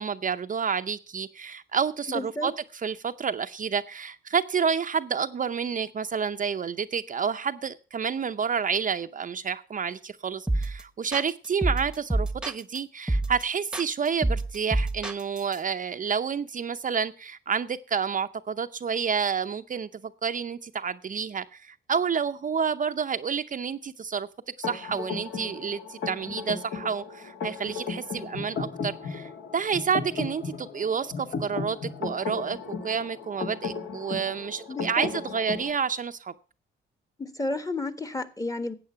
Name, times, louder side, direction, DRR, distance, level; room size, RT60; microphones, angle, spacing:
voice 1, 0.0-2.5 2.8-24.3 24.6-32.6 32.8-36.3, right 6 dB, 40° right, 0.6 m, -29 dB
voice 2, 2.1-2.5 34.7-35.1 37.2-38.7, left 2 dB, 15° left, 1.4 m, -32 dB
sound 1, 10.5-10.8 11.1-12.8 13.1-13.4 13.7-15.6, right 2 dB, 5° right, 1.1 m, -27 dB
sound 2, 24.6-35.7, left 5 dB, 60° left, 2.1 m, -35 dB
12.5 x 8.4 x 5.7 m
cardioid pair, 80°, 21 cm